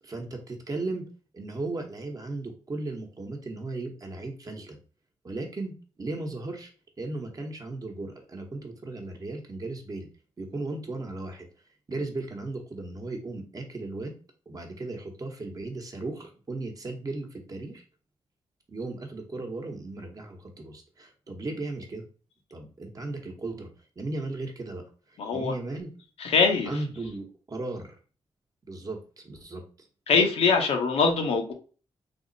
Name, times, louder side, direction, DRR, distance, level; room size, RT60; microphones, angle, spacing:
voice 1, 0.0-1.1 1.3-4.8 5.2-6.7 7.0-10.1 10.4-11.5 11.9-14.1 14.5-17.8 18.7-22.0 22.5-23.7 24.0-24.8 25.1-25.9 26.7-28.0 28.7-29.9, right 2 dB, 35° right, 2 dB, 0.9 m, -36 dB
voice 2, 25.2-25.6 26.2-26.8 30.1-31.5, left 5 dB, 85° left, 4 dB, 0.7 m, -23 dB
3.4 x 2.0 x 3.9 m, 0.38 s
cardioid pair, 85°, 10 cm